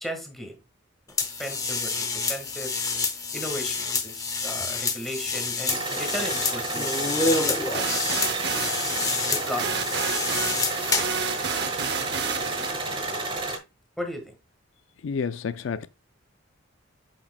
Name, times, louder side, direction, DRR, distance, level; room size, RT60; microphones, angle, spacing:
voice 1, 0.0-0.6 1.4-2.7 3.3-7.1 9.2-9.9 14.0-14.3, equal, ahead, 1.5 m, -35 dB
sound 1, 1.2-11.2, left 4 dB, 15° left, 0.7 m, -28 dB
sound 2, 5.7-13.6, right 3 dB, 25° right, 1.3 m, -31 dB
sound 3, 7.2-12.7, right 7 dB, 50° right, 0.7 m, -31 dB
voice 2, 15.0-15.9, left 6 dB, 60° left, 0.4 m, -29 dB
8.3 x 6.0 x 2.2 m
head